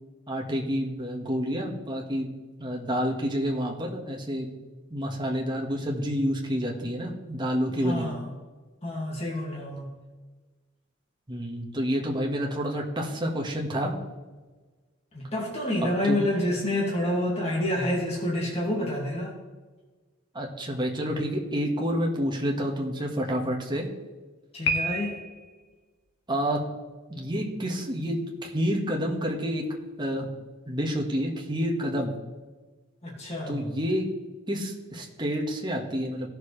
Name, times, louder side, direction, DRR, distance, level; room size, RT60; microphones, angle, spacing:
voice 1, 0.3-2.3 2.6-4.5 4.9-8.2 11.3-13.9 16.0-16.2 20.3-23.9 26.3-26.6 27.1-29.7 30.0-30.3 30.7-32.1 33.5-34.1 34.5-36.3, equal, 20° right, -1 dB, 1.6 m, -29 dB
voice 2, 7.8-8.2 8.8-9.9 15.1-19.3 24.5-25.2 33.0-33.6, left 1 dB, 30° left, -4 dB, 2.3 m, -28 dB
Piano, 24.7-25.6, left 1 dB, 55° left, 1.3 m, -29 dB
17.0 x 6.8 x 3.4 m, 1.3 s
head